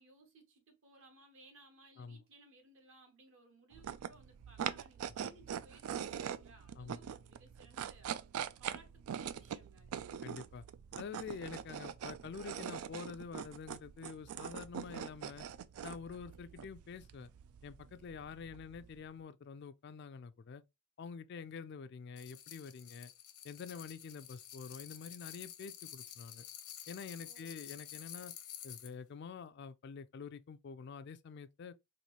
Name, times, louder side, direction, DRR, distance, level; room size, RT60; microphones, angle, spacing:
voice 1, 0.0-10.0 27.2-27.7, right 2 dB, 60° right, 1.2 m, -62 dB
sound 1, 3.7-19.1, right 8 dB, 80° right, 0.3 m, -43 dB
voice 2, 10.2-10.6 10.9-15.5 15.8-17.3 17.6-20.6 21.0-23.1 23.4-26.4 26.9-28.3 28.6-31.7, left 5 dB, 50° left, 0.3 m, -47 dB
sound 2, 22.2-28.9, left 11 dB, 90° left, 0.8 m, -50 dB
4.2 x 2.6 x 2.9 m
head